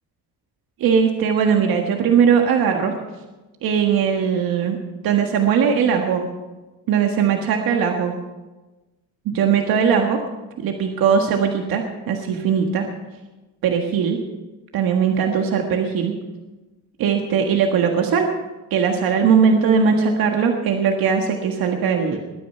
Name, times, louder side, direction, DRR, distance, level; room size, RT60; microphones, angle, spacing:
voice 1, 0.8-2.9 3.6-4.8 5.0-6.3 6.9-8.1 9.3-10.2 10.6-12.9 13.6-14.2 14.7-16.2 17.0-18.3 18.7-22.2, right 6 dB, 75° right, 3 dB, 1.7 m, -19 dB
21.5 x 9.6 x 5.7 m, 1.1 s
cardioid pair, 85°, 36 cm